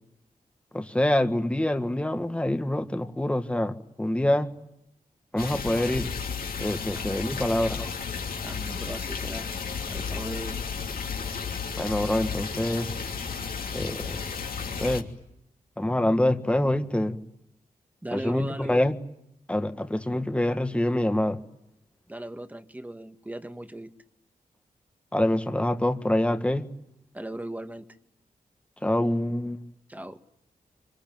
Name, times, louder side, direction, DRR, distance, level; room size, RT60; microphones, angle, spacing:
voice 1, 0.7-4.5 5.3-6.1 6.6-7.8 11.8-12.9 13.7-14.2 14.8-15.1 15.8-17.2 18.1-18.9 19.5-21.4 25.1-26.7 28.8-29.6, left 1 dB, 10° left, 7 dB, 1.6 m, -26 dB
sound 1, 5.4-15.0, left 6 dB, 75° left, 3.1 m, -33 dB
voice 2, 6.9-7.7 8.4-9.5 9.9-10.7 18.0-18.8 22.1-23.9 27.1-27.9 29.9-30.2, right 1 dB, 10° right, 8 dB, 1.9 m, -38 dB
25.5 x 25.5 x 9.2 m, 0.82 s
wide cardioid pair, 90°, 15 cm